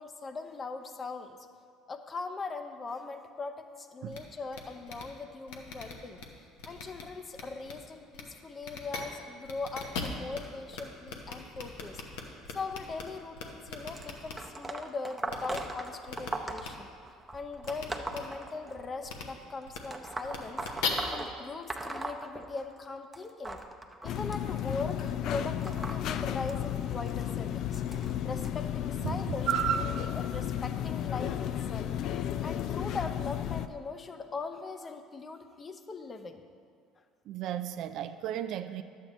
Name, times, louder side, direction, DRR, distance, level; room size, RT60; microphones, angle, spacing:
voice 1, 0.0-1.4 1.9-6.2 6.7-12.0 12.5-16.9 17.3-20.6 21.1-23.6 24.0-27.8 28.2-36.4, left 4 dB, 30° left, 0.7 m, -40 dB
sound 1, 4.1-4.2 4.5-4.6 4.9-5.0 5.5-6.2 6.6-7.0 7.3-7.7 8.1-8.2 8.6-9.0 9.4-10.4 10.7-10.8 11.1-13.0 13.4-14.3 15.3-15.6 16.1-16.3 16.6-16.7 17.6-17.8 18.1-18.2 19.1-19.2 19.7-19.8 20.2-20.9, left 5 dB, 80° left, 1.0 m, -38 dB
sound 2, 14.0-19.1 19.8-22.9 23.1-28.5 29.3-29.5 30.6-30.7 31.6-31.7 32.4-32.5, right 2 dB, 15° right, 0.7 m, -40 dB
sound 3, 24.0-33.7, left 10 dB, 65° left, 0.3 m, -33 dB
voice 2, 29.5-30.1 37.3-38.8, right 10 dB, 65° right, 0.3 m, -32 dB
11.5 x 8.2 x 3.1 m
supercardioid pair, 80°, 0 cm